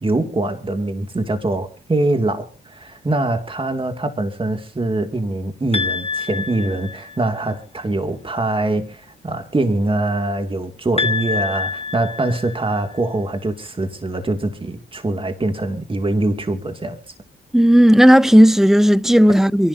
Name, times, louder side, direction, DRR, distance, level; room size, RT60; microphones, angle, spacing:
voice 1, 0.0-17.0, right 2 dB, 25° right, 2.3 m, -23 dB
sound 1, 5.7-7.4 11.0-13.0, left 5 dB, 30° left, 1.6 m, -26 dB
voice 2, 17.5-19.7, equal, ahead, 0.6 m, -12 dB
26.5 x 11.5 x 2.7 m
supercardioid pair, 55°, 20 cm